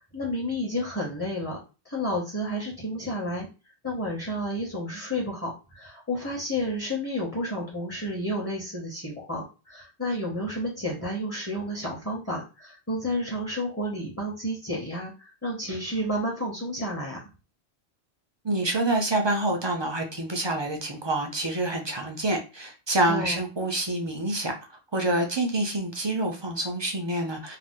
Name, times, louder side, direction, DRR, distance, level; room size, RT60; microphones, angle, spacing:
voice 1, 0.1-1.6 1.8-3.5 3.8-17.2 23.1-23.4, equal, 15° left, -2 dB, 0.7 m, -31 dB
voice 2, 18.4-24.5 24.9-27.6, right 2 dB, 45° right, 3 dB, 0.3 m, -27 dB
2.5 x 2.0 x 3.5 m, 0.31 s
omnidirectional pair, 1.1 m